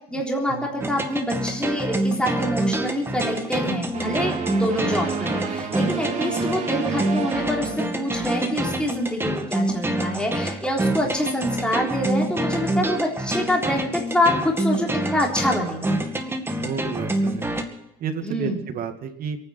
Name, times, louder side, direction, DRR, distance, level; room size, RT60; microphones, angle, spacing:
voice 1, 0.1-15.9 18.2-18.6, left 1 dB, 5° left, -1 dB, 3.7 m, -26 dB
sound 1, 0.8-17.6, right 1 dB, 15° right, 2.2 m, -26 dB
sound 2, 3.9-8.4, right 6 dB, 45° right, 3.3 m, -30 dB
voice 2, 16.6-17.6 18.0-19.4, right 7 dB, 60° right, 7 dB, 2.1 m, -31 dB
28.5 x 9.8 x 4.4 m, 0.85 s
cardioid pair, 110°, 17 cm